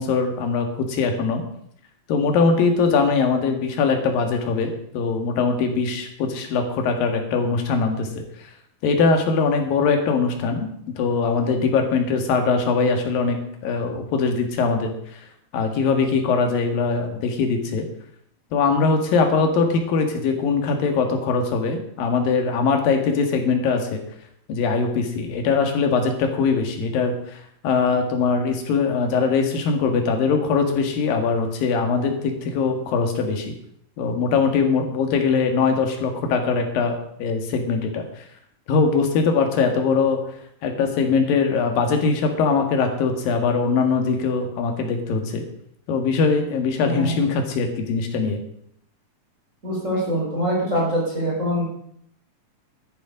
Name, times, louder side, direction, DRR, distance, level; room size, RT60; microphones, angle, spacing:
voice 1, 0.0-1.4 2.1-8.1 8.8-10.7 11.0-14.9 15.5-17.9 18.5-24.0 24.5-33.5 34.0-38.3 38.7-40.2 40.6-45.4 45.9-48.4, left 4 dB, 90° left, 4 dB, 3.5 m, -21 dB
voice 2, 46.8-47.1 49.6-51.7, equal, 20° right, -4 dB, 4.5 m, -24 dB
12.0 x 11.0 x 5.2 m, 0.67 s
omnidirectional pair, 3.9 m